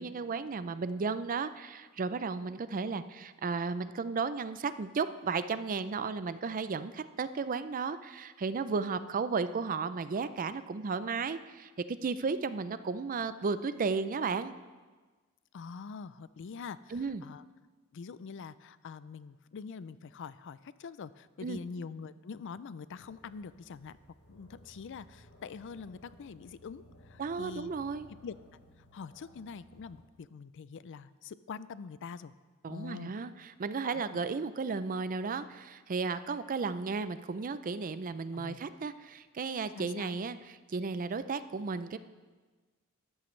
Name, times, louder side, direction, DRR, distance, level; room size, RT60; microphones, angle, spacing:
voice 1, 0.0-14.5 16.9-17.2 21.4-21.6 27.2-28.1 32.6-40.4 40.7-42.0, right 4 dB, 40° right, 13 dB, 0.4 m, -34 dB
voice 2, 15.5-17.4 17.9-24.0 24.3-27.7 28.2-28.3 28.9-32.3 32.7-33.1 33.8-34.0 38.3-38.6 39.7-40.1, left 5 dB, 60° left, 16 dB, 0.4 m, -44 dB
sound 1, 22.9-30.0, equal, 80° left, 2.6 m, -58 dB
13.5 x 13.0 x 3.2 m, 1.3 s
head